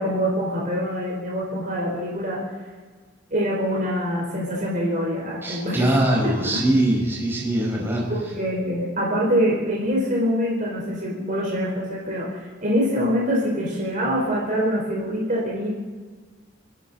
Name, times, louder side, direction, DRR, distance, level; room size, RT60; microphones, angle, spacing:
voice 1, 0.0-2.4 3.3-5.8 6.2-6.3 8.1-15.7, equal, 40° right, -3 dB, 4.3 m, -24 dB
voice 2, 5.4-8.1, right 1 dB, 10° right, -4 dB, 5.4 m, -22 dB
30.0 x 11.5 x 4.1 m, 1.5 s
head